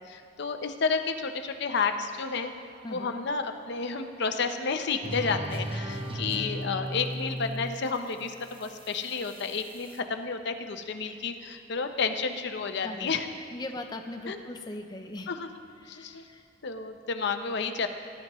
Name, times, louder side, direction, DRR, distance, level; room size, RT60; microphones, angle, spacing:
voice 1, 0.0-2.5 2.9-13.3 14.3-14.4 15.3-15.5 15.8-16.3 16.6-17.9, left 5 dB, 65° left, 7 dB, 0.7 m, -31 dB
voice 2, 2.8-3.2 12.8-13.1 13.5-15.3 15.8-16.5, left 2 dB, 20° left, 4 dB, 0.5 m, -39 dB
sound 1, 5.0-10.0, equal, 30° right, 0.8 m, -37 dB
19.5 x 11.0 x 3.1 m, 2.4 s
head